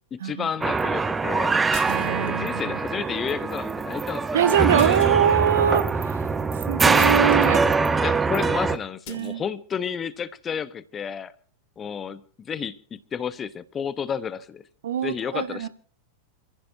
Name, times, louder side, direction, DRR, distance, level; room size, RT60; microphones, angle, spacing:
voice 1, 0.1-1.5 2.2-5.1 8.0-11.3 11.8-14.6 15.0-15.7, left 7 dB, 20° left, 1.0 m, -31 dB
sound 1, 0.6-8.8, right 4 dB, 15° right, 0.8 m, -23 dB
sound 2, 1.7-2.5 4.8-5.6 7.0-7.6 9.1-9.3, left 16 dB, 45° left, 1.3 m, -42 dB
voice 2, 1.9-2.8 4.3-6.2 6.7-7.6 9.1-9.4 14.8-15.7, right 9 dB, 60° right, 1.1 m, -23 dB
28.0 x 15.5 x 2.7 m
figure-of-eight pair, 90°, 0 cm